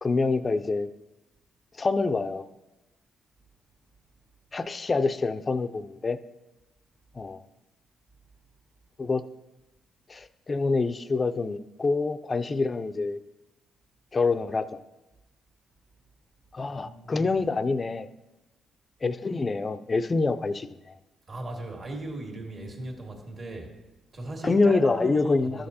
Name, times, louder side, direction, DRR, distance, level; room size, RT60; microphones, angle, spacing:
voice 1, 0.0-0.9 1.7-2.5 4.5-6.2 7.1-7.4 9.0-9.2 10.1-13.2 14.1-14.8 16.5-18.1 19.0-21.0 24.4-25.7, left 3 dB, 30° left, 12 dB, 0.4 m, -26 dB
voice 2, 16.8-17.3 21.3-23.7 24.1-25.7, right 2 dB, 45° right, 2 dB, 1.8 m, -37 dB
13.0 x 6.5 x 2.8 m, 1.0 s
cardioid pair, 90°, 0 cm